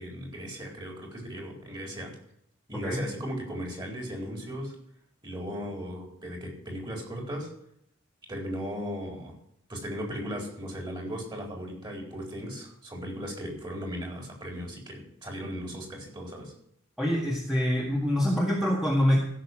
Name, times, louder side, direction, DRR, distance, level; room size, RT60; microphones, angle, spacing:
voice 1, 0.0-2.2 2.7-4.7 5.2-7.5 8.3-9.4 9.7-16.5, equal, 25° right, 0 dB, 4.1 m, -37 dB
voice 2, 17.0-19.2, equal, 5° right, -4 dB, 1.8 m, -25 dB
16.0 x 6.8 x 6.1 m, 0.71 s
head